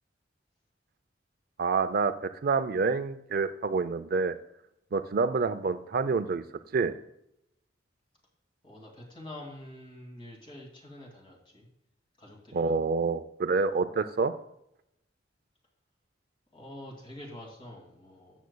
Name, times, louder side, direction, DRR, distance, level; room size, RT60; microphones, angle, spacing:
voice 1, 1.6-4.3 4.9-6.4 6.7-7.0 12.5-14.3, right 4 dB, 55° right, 11 dB, 0.4 m, -27 dB
voice 2, 8.6-11.7 12.2-12.8 16.5-18.5, left 1 dB, 30° left, 0 dB, 2.3 m, -46 dB
12.5 x 8.2 x 2.2 m, 0.80 s
head